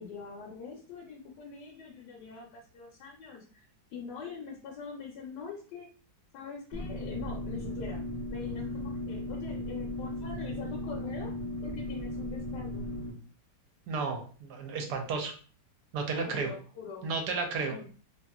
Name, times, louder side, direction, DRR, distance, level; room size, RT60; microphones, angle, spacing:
voice 1, 0.0-3.6 3.9-5.9 6.3-8.0 8.3-11.4 11.6-12.9 16.3-17.1 17.6-17.9, left 5 dB, 75° left, -1 dB, 1.1 m, -43 dB
sound 1, 6.7-13.1, left 1 dB, 45° left, 0.8 m, -36 dB
voice 2, 13.9-15.3 15.9-16.5 17.0-17.7, right 4 dB, 70° right, 4 dB, 1.1 m, -32 dB
2.8 x 2.7 x 2.3 m, 0.40 s
omnidirectional pair, 2.0 m